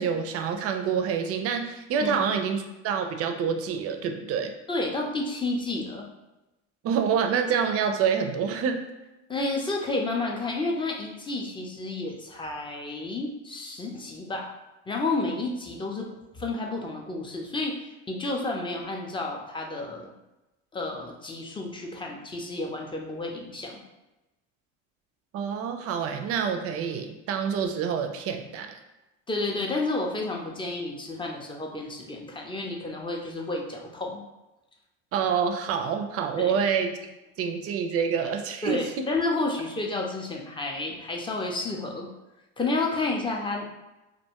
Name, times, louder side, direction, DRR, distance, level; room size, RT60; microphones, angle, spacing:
voice 1, 0.0-4.5 6.8-8.8 25.3-28.8 35.1-36.9 37.4-39.1, right 7 dB, 45° right, 6 dB, 0.4 m, -27 dB
voice 2, 4.7-6.1 9.3-14.5 14.9-16.1 16.3-20.1 20.7-23.8 29.3-34.2 36.4-36.5 38.6-42.1 42.6-43.7, left 2 dB, 15° left, 0 dB, 0.4 m, -31 dB
2.5 x 2.2 x 2.8 m, 1.0 s
supercardioid pair, 95°, 34 cm